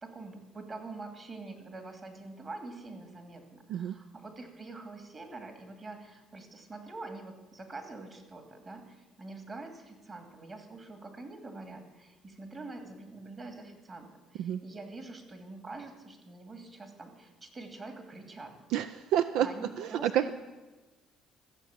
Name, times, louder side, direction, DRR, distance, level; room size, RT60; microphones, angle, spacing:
voice 1, 0.0-18.5 19.3-20.3, right 3 dB, 35° right, 6 dB, 2.5 m, -45 dB
voice 2, 18.7-19.5 19.8-20.3, right 11 dB, 75° right, 12 dB, 0.4 m, -29 dB
14.0 x 7.3 x 7.3 m, 1.2 s
supercardioid pair, 85°, 0 cm